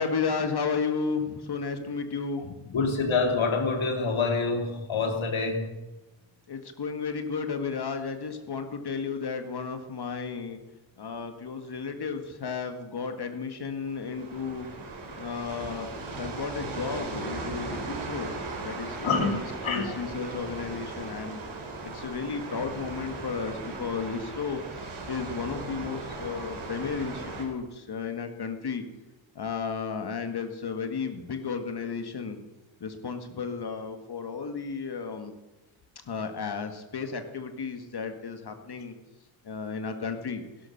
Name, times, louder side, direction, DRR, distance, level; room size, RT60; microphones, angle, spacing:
voice 1, 0.0-2.8 6.5-10.6 11.0-14.7 15.2-15.9 16.2-21.4 21.8-24.6 25.1-28.8 29.4-32.4 32.8-35.3 36.1-38.9 39.4-40.4, left 5 dB, 55° left, 7 dB, 1.8 m, -33 dB
voice 2, 2.7-5.7 19.0-19.3 19.6-19.9, left 4 dB, 75° left, 4 dB, 3.2 m, -26 dB
sound 1, 13.8-27.4, right 3 dB, 85° right, 4.0 m, -38 dB
16.0 x 12.5 x 6.6 m, 1.1 s
wide cardioid pair, 100°, 47 cm